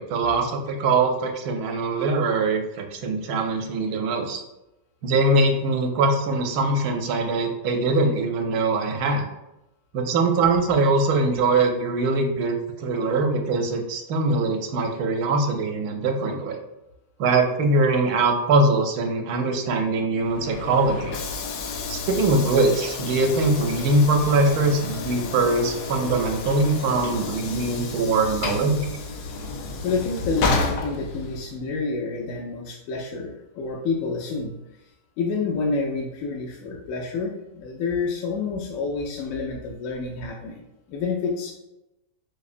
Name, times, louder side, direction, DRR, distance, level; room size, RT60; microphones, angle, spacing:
voice 1, 0.0-4.4 5.0-9.2 9.9-16.6 17.2-21.2 21.9-28.8, right 3 dB, 80° right, 4 dB, 1.1 m, -22 dB
Train / Sliding door, 20.2-31.6, left 3 dB, 90° left, 1.1 m, -31 dB
voice 2, 29.8-34.6 35.2-40.6 40.9-41.5, left 4 dB, 70° left, -1 dB, 0.9 m, -28 dB
4.1 x 2.7 x 2.5 m, 0.91 s
omnidirectional pair, 1.6 m